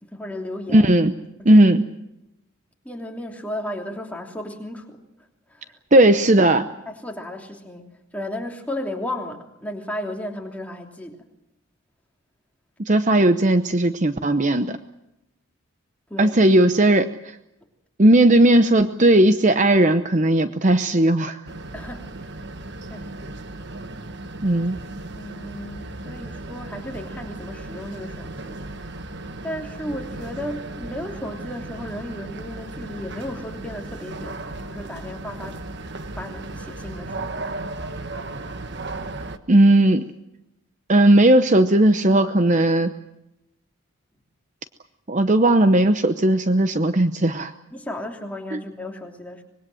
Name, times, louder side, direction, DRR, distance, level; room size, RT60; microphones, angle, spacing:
voice 1, 0.0-0.9 1.4-1.7 2.8-5.0 5.5-5.8 6.9-7.9 8.1-11.2 16.1-16.4 21.7-22.5 22.9-23.3 25.2-29.0 29.4-35.8 36.2-37.5 47.7-49.4, left 1 dB, 5° left, 1 dB, 3.0 m, -34 dB
voice 2, 0.7-1.1 1.4-1.8 5.9-6.7 12.9-14.7 16.2-17.1 18.0-21.4 24.4-24.8 39.5-40.1 40.9-42.9 45.1-47.5 48.5-48.6, right 1 dB, 35° right, 10 dB, 0.8 m, -16 dB
sound 1, 21.5-39.4, right 2 dB, 50° right, 1.3 m, -36 dB
25.0 x 22.0 x 7.7 m, 0.87 s
head